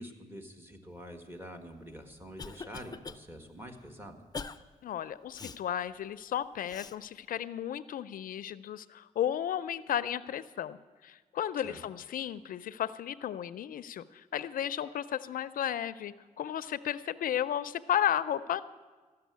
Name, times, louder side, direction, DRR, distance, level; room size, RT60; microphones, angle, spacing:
voice 1, 0.0-4.2 11.6-11.8, equal, 15° right, 4 dB, 1.5 m, -46 dB
Cough, 1.8-3.2 3.6-3.8 4.3-4.6 5.3-5.6 6.7-7.0, left 4 dB, 30° left, 0.5 m, -42 dB
voice 2, 4.8-18.6, left 10 dB, 85° left, 15 dB, 0.4 m, -34 dB
13.5 x 6.8 x 9.4 m, 1.4 s
cardioid pair, 90°, 14 cm